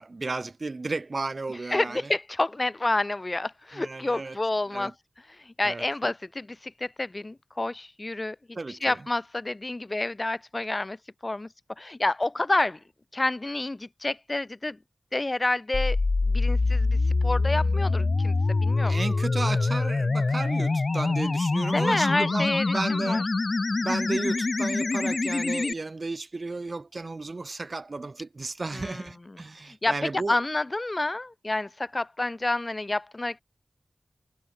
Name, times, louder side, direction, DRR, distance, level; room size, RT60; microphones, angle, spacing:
voice 1, 0.0-2.0 3.7-4.4 4.7-4.9 5.6-6.1 8.6-9.0 18.8-23.2 23.8-30.4, right 3 dB, 55° right, 1.1 m, -33 dB
voice 2, 1.7-4.9 5.3-12.8 13.1-14.8 15.1-16.0 16.2-19.0 21.7-23.2 28.7-33.4, left 2 dB, 35° left, 2.5 m, -29 dB
sound 1, 15.7-25.7, left 3 dB, 55° left, 0.3 m, -25 dB
cardioid pair, 50°, 0 cm